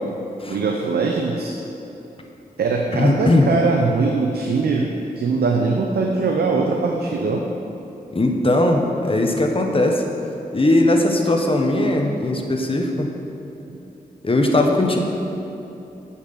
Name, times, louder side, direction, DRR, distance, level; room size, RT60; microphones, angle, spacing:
voice 1, 0.5-1.5 2.6-7.4 13.7-13.8, right 4 dB, 85° right, 1 dB, 0.7 m, -21 dB
voice 2, 2.9-3.5 8.1-10.0 10.5-13.1 14.2-15.0, left 1 dB, 35° left, 2 dB, 1.2 m, -19 dB
8.4 x 5.7 x 6.7 m, 3.0 s
cardioid pair, 45°, 16 cm